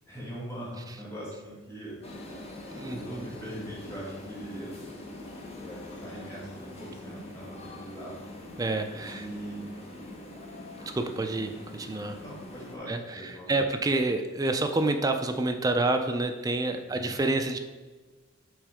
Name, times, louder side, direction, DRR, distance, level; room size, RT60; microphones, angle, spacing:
voice 1, 0.1-2.0 2.9-4.7 5.6-8.2 9.1-9.7 12.2-13.8 16.8-17.1, right 1 dB, 15° left, -7 dB, 1.7 m, -41 dB
sound 1, 2.0-12.8, left 1 dB, 30° left, 0.9 m, -43 dB
voice 2, 2.7-3.4 8.6-9.3 10.9-12.2 12.9-17.6, right 2 dB, 15° right, 6 dB, 0.3 m, -28 dB
6.2 x 4.1 x 4.8 m, 1.3 s
head